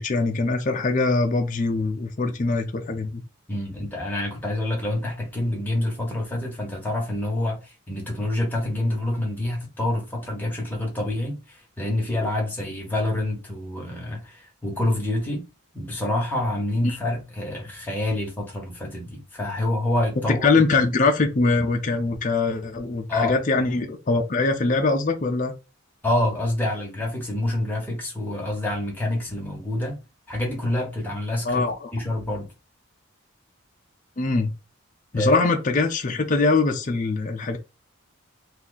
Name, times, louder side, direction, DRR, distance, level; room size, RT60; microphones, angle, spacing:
voice 1, 0.0-3.2 16.8-17.0 20.3-25.5 31.5-31.9 34.2-34.5 35.1-37.6, left 3 dB, 35° left, 0.4 m, -22 dB
voice 2, 3.5-15.5 15.7-20.5 23.1-23.3 26.0-30.0 30.3-32.5 35.1-35.5, left 1 dB, 10° left, 0.9 m, -27 dB
2.7 x 2.3 x 3.9 m
head